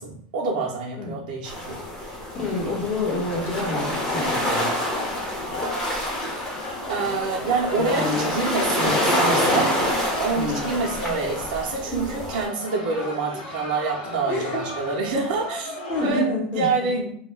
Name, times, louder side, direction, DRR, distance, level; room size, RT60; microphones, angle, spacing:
voice 1, 0.0-2.1 6.9-9.7 10.2-17.1, right 4 dB, 80° right, -3 dB, 0.5 m, -27 dB
sound 1, 1.4-12.5, left 1 dB, 15° left, 0.7 m, -27 dB
voice 2, 2.3-4.7 7.8-8.3 8.8-9.0 9.3-9.8 10.3-10.6 11.9-12.0 14.3-14.6 15.9-16.9, left 1 dB, 40° left, -1 dB, 0.9 m, -28 dB
sound 2, 3.5-16.1, left 2 dB, 75° left, 1.0 m, -36 dB
2.1 x 2.1 x 3.1 m, 0.63 s
supercardioid pair, 140°, 5 cm